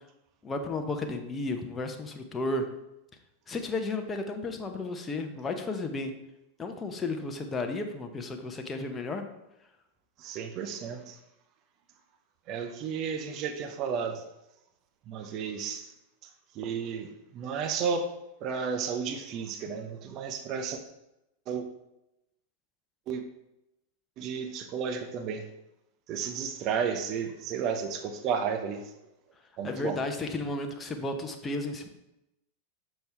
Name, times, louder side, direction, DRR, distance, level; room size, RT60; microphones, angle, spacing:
voice 1, 0.4-2.7 3.5-6.1 6.6-9.2 29.6-31.9, left 2 dB, 15° left, 5 dB, 0.9 m, -33 dB
voice 2, 10.2-11.2 12.5-14.2 15.1-15.9 16.5-18.1 18.4-20.8 21.5-21.7 23.1-23.2 24.2-25.5 26.1-28.9 29.6-30.0, right 6 dB, 35° right, 6 dB, 0.7 m, -32 dB
6.8 x 6.0 x 3.3 m, 0.89 s
figure-of-eight pair, 90°, 0 cm